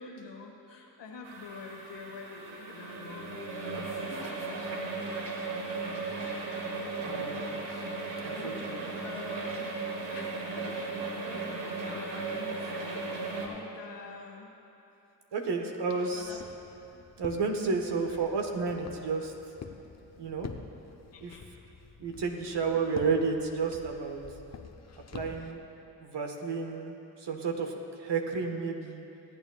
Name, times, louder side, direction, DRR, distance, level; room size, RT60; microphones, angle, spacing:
voice 1, 0.0-4.6 6.2-7.9 8.1-9.7 10.1-14.5 16.0-16.5 18.1-18.3 21.1-21.5, left 4 dB, 70° left, 1 dB, 1.7 m, -47 dB
sound 1, 1.2-13.5, right 3 dB, 80° right, 1.5 m, -36 dB
voice 2, 7.0-7.4 8.2-8.8 15.3-16.4 16.9-19.3 20.2-20.5 21.2-21.4 22.0-24.2 25.1-25.6 26.0-29.0, right 4 dB, 65° right, 3 dB, 1.5 m, -31 dB
Walk footsteps, 16.1-25.5, left 5 dB, 35° left, 0.9 m, -48 dB
25.0 x 8.8 x 2.4 m, 2.9 s
supercardioid pair, 45°, 44 cm